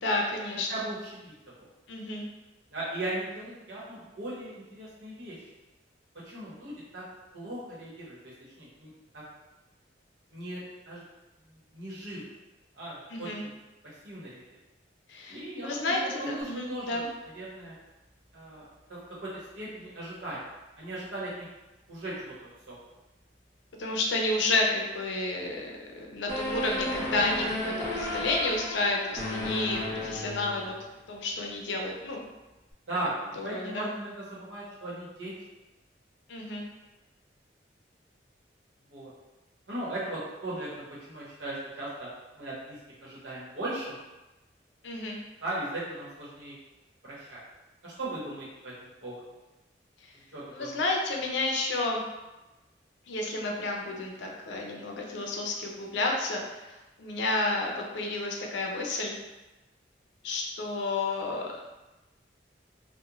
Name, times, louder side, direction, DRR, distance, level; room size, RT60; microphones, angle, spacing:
voice 1, 0.0-0.8 1.9-2.2 13.1-13.4 15.1-17.1 23.8-30.7 31.1-32.3 33.4-33.9 36.3-36.7 44.8-45.2 50.5-52.0 53.1-59.1 60.2-61.5, left 2 dB, 80° left, 0 dB, 0.5 m, -31 dB
voice 2, 0.7-1.3 2.7-5.5 6.2-7.0 7.3-8.3 8.6-9.2 10.3-11.0 11.5-12.2 12.7-13.5 14.0-14.4 15.3-17.7 18.3-19.3 19.6-20.4 20.8-21.5 21.9-22.7 30.1-30.3 32.9-33.1 33.4-35.3 38.9-39.1 39.7-42.1 42.3-44.0 45.4-46.5 47.0-47.4 47.8-49.2 50.3-50.8, right 1 dB, 85° right, -7 dB, 1.0 m, -38 dB
sound 1, 26.3-30.9, left 1 dB, 15° left, 0.5 m, -33 dB
2.4 x 2.1 x 2.9 m, 1.1 s
head